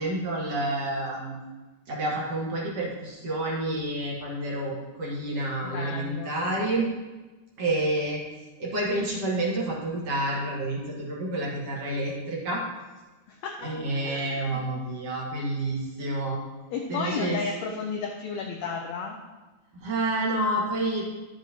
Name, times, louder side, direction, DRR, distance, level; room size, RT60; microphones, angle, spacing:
voice 1, 0.0-1.4 1.9-6.9 7.6-8.2 8.6-12.6 13.6-16.4 16.9-17.4 19.8-21.1, right 1 dB, 50° right, -4 dB, 2.3 m, -29 dB
voice 2, 5.6-6.5 13.3-13.7 14.0-14.6 16.7-19.2, left 5 dB, 90° left, 1 dB, 1.5 m, -33 dB
11.0 x 7.7 x 2.9 m, 1.2 s
omnidirectional pair, 4.0 m